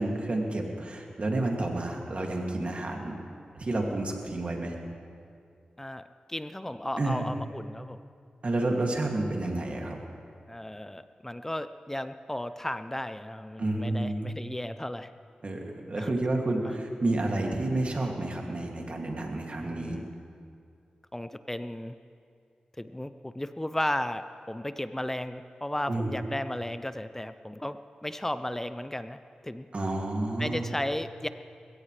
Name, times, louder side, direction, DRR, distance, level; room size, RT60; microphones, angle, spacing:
voice 1, 0.0-3.2 3.5-4.7 7.0-7.3 8.4-10.0 13.6-14.2 15.4-20.0 25.9-26.1 29.7-30.7, right 2 dB, 50° right, 0 dB, 2.4 m, -30 dB
voice 2, 5.8-8.0 10.5-15.1 16.0-16.1 16.6-16.7 19.6-20.1 21.1-22.0 22.8-29.2 29.4-29.7 30.4-31.3, left 1 dB, 15° left, 11 dB, 0.5 m, -35 dB
21.0 x 16.5 x 3.3 m, 2.3 s
cardioid pair, 50°, 3 cm